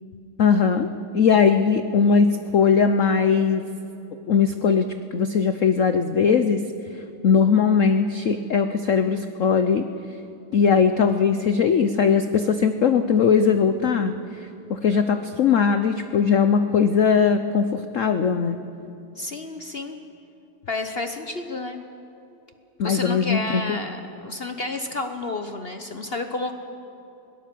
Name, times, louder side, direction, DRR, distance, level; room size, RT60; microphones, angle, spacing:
voice 1, 0.4-0.9 1.1-3.6 4.3-6.6 7.2-9.9 10.5-14.1 14.7-18.6 22.8-23.8, left 6 dB, 85° left, 9 dB, 0.6 m, -20 dB
voice 2, 19.2-20.0 20.7-21.8 22.8-26.5, left 2 dB, 50° left, 7 dB, 0.7 m, -30 dB
22.0 x 18.0 x 7.6 m, 2.9 s
omnidirectional pair, 2.3 m